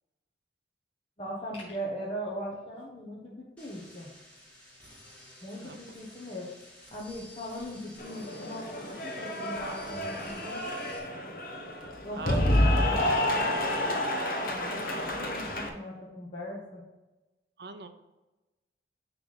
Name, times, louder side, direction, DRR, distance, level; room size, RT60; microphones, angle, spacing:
voice 1, 1.2-4.1 5.4-6.5 6.9-10.6 11.8-13.1 13.3-16.8, equal, 30° left, -5 dB, 1.1 m, -39 dB
sound 1, 3.6-11.0, left 1 dB, 5° left, 1.9 m, -52 dB
Cheering / Applause, 8.0-15.7, left 1 dB, 50° left, 1.0 m, -29 dB
voice 2, 17.6-17.9, right 3 dB, 60° right, 8 dB, 0.7 m, -41 dB
10.0 x 3.4 x 4.1 m, 1.1 s
head